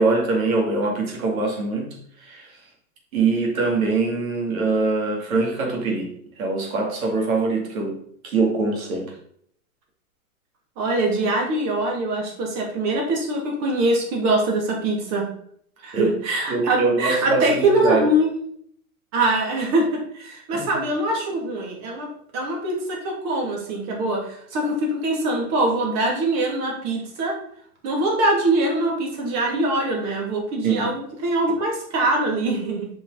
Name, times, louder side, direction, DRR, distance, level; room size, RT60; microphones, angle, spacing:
voice 1, 0.0-2.5 3.1-6.1 6.4-8.0 8.2-9.1 15.9-16.1 16.5-18.1 20.5-20.7 30.6-30.9, right 3 dB, 70° right, 0 dB, 2.6 m, -23 dB
voice 2, 10.8-15.3 15.8-18.3 19.1-27.4 27.8-32.9, right 1 dB, 35° right, 0 dB, 2.6 m, -23 dB
6.7 x 5.4 x 4.1 m, 0.65 s
hypercardioid pair, 125°, 44 cm